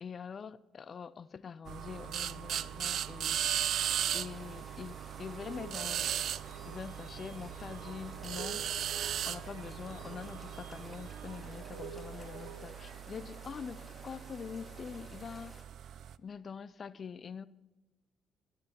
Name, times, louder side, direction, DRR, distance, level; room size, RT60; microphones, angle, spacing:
voice 1, 0.0-3.6 4.1-6.1 6.6-8.6 9.2-15.6 16.2-17.5, left 6 dB, 45° left, 0.6 m, -44 dB
sound 1, 1.7-16.1, right 10 dB, 65° right, 0.5 m, -38 dB
sound 2, 3.7-15.6, left 1 dB, ahead, 2.3 m, -55 dB
sound 3, 5.4-13.0, right 5 dB, 85° right, 4.1 m, -50 dB
14.0 x 11.0 x 4.5 m
cardioid pair, 90°, 0 cm